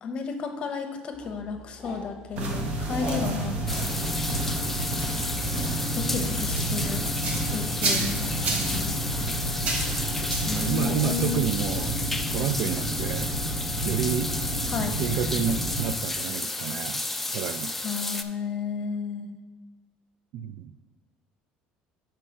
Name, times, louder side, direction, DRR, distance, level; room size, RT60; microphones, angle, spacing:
voice 1, 0.0-3.9 5.9-7.1 7.5-9.0 10.4-11.4 14.7-15.0 17.8-19.4, left 5 dB, 40° left, 6 dB, 0.9 m, -33 dB
sound 1, 1.1-11.1, left 2 dB, 15° right, 2.3 m, -45 dB
sound 2, 2.4-15.9, right 1 dB, 45° right, 1.2 m, -30 dB
sound 3, 3.7-18.2, left 2 dB, 5° left, 0.4 m, -32 dB
voice 2, 10.2-12.0 12.3-13.3 13.8-14.3 15.0-17.0 17.3-17.7 20.3-20.7, right 9 dB, 65° right, 14 dB, 0.3 m, -30 dB
5.7 x 4.4 x 6.3 m, 1.3 s
cardioid pair, 135°, 3 cm